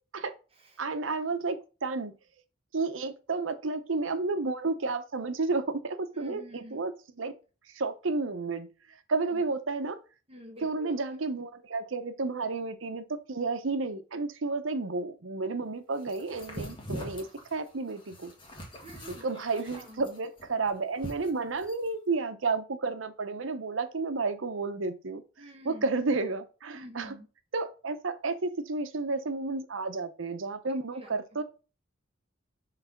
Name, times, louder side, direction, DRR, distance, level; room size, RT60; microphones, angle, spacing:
voice 1, 0.8-2.1 2.7-7.3 7.7-8.7 9.1-10.0 10.6-17.3 17.5-18.3 19.1-25.2 25.6-27.2 27.5-31.4, right 3 dB, 80° right, 0.8 m, -31 dB
voice 2, 6.1-6.8 9.3-9.4 10.3-11.0 18.7-19.2 19.7-20.0 25.4-25.8 26.7-27.3 30.9-31.4, equal, 30° right, 1.3 m, -48 dB
sound 1, 16.1-21.9, equal, 25° left, 1.4 m, -43 dB
6.0 x 3.3 x 5.8 m
head